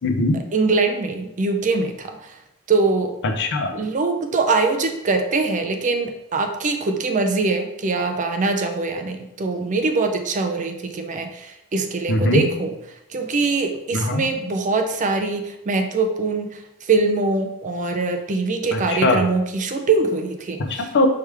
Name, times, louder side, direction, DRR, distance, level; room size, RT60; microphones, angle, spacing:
voice 1, 0.0-0.4 3.2-3.7 12.1-12.5 13.9-14.3 18.7-19.2 20.6-21.1, left 2 dB, 55° left, 5 dB, 0.5 m, -21 dB
voice 2, 0.5-2.3 2.7-3.2 3.7-12.7 13.1-20.9, right 3 dB, 35° right, 6 dB, 0.4 m, -23 dB
4.8 x 3.3 x 3.3 m, 0.83 s
head